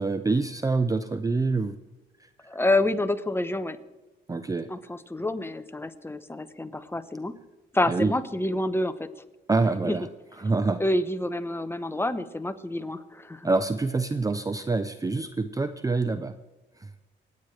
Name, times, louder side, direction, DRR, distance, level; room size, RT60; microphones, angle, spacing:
voice 1, 0.0-1.8 4.3-4.7 7.9-8.1 9.5-10.1 10.4-10.8 13.4-16.4 16.8-16.9, right 3 dB, 15° right, 11 dB, 0.6 m, -26 dB
voice 2, 2.5-3.8 4.7-7.3 7.7-9.1 9.8-9.9 10.8-13.5, left 1 dB, 10° left, 11 dB, 0.9 m, -28 dB
27.5 x 9.2 x 3.3 m, 1.1 s
cardioid pair, 90°, 20 cm